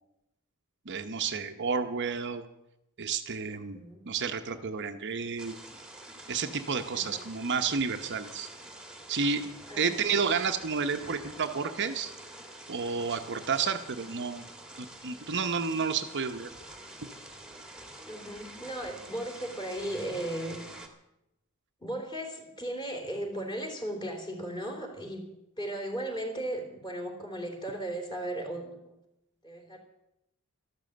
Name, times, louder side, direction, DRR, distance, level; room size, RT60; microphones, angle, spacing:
voice 1, 0.9-2.4 3.0-5.5 6.3-8.5 9.1-9.5 9.8-12.1 12.7-14.5 14.8-16.5, right 5 dB, 55° right, 7 dB, 0.9 m, -31 dB
voice 2, 3.5-4.1 6.9-7.3 9.7-10.1 13.4-13.5 18.1-20.6 21.8-25.2 25.6-29.0 29.4-29.8, right 1 dB, 20° left, 2 dB, 3.5 m, -36 dB
sound 1, 5.4-20.9, right 1 dB, 5° right, 1.8 m, -47 dB
13.0 x 12.5 x 7.8 m, 0.87 s
head